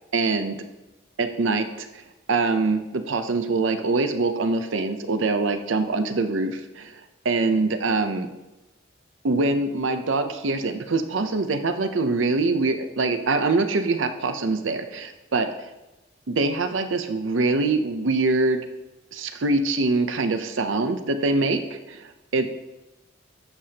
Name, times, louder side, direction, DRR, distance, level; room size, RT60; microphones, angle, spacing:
voice 1, 0.1-0.6 1.2-1.9 2.3-7.0 7.2-8.3 9.2-15.5 16.3-18.6 19.1-22.5, right 3 dB, 80° right, 8 dB, 0.7 m, -24 dB
11.5 x 7.6 x 2.9 m, 1.0 s
head